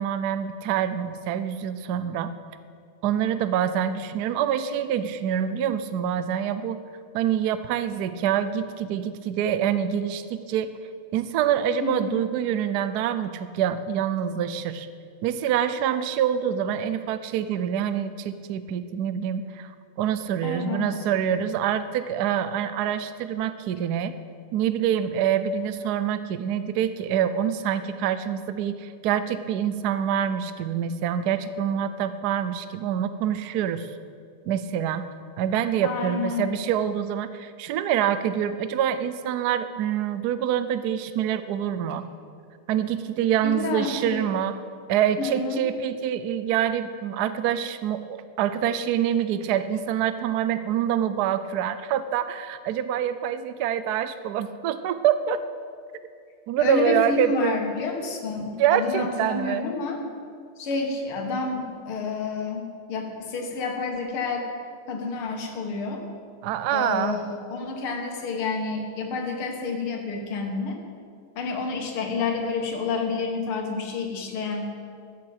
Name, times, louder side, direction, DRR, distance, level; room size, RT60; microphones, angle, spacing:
voice 1, 0.0-2.3 3.0-6.8 7.1-10.7 11.1-14.9 15.2-19.7 20.0-24.1 24.5-33.9 34.5-35.0 35.4-42.1 42.7-44.6 44.9-55.4 56.5-57.6 58.6-59.7 66.4-67.2, right 9 dB, 75° right, 12 dB, 0.9 m, -26 dB
voice 2, 11.8-12.1 20.4-20.9 35.8-36.4 43.4-44.3 45.2-45.6 56.6-60.0 60.6-64.5 64.9-66.0 66.7-70.8 71.4-74.7, left 4 dB, 80° left, 2 dB, 2.4 m, -29 dB
12.5 x 7.4 x 8.8 m, 2.2 s
omnidirectional pair, 2.4 m